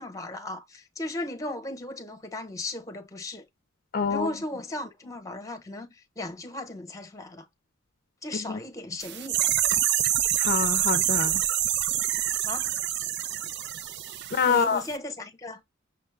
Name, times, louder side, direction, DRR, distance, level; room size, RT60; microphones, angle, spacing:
voice 1, 0.0-3.4 4.1-5.9 6.2-7.5 8.2-9.5 12.4-12.7 14.4-15.6, left 1 dB, 15° left, 0.9 m, -36 dB
voice 2, 3.9-4.3 8.3-8.6 10.4-11.4 14.3-14.8, left 6 dB, 45° left, 0.5 m, -26 dB
sound 1, 9.0-14.6 14.9-15.0, right 11 dB, 55° right, 0.4 m, -26 dB
6.2 x 2.2 x 3.3 m
head